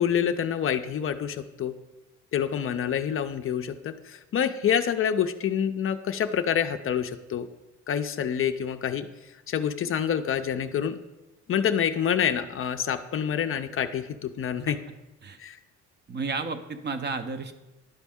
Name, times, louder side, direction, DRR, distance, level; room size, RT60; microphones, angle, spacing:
voice 1, 0.0-1.7 2.3-7.5 7.9-9.1 9.5-11.0 11.5-14.8 15.4-15.6, left 8 dB, 45° left, 9 dB, 0.4 m, -27 dB
voice 2, 14.7-15.0 15.2-15.4 16.1-17.5, right 4 dB, 35° right, 8 dB, 0.6 m, -32 dB
11.0 x 4.1 x 3.5 m, 1.0 s
cardioid pair, 90°, 30 cm